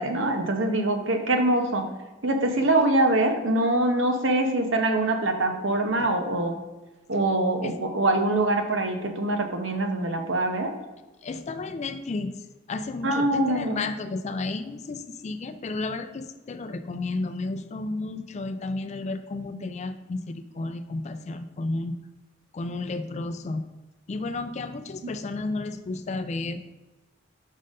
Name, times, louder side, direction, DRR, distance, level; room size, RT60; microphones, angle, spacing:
voice 1, 0.0-1.9 2.2-6.6 7.1-10.7 13.0-13.8 25.0-25.1, right 2 dB, 70° right, 5 dB, 0.8 m, -24 dB
voice 2, 11.2-12.3 12.7-21.9 22.5-23.6 24.1-26.8, left 3 dB, 35° left, 9 dB, 0.4 m, -32 dB
5.4 x 3.8 x 5.2 m, 1.1 s
head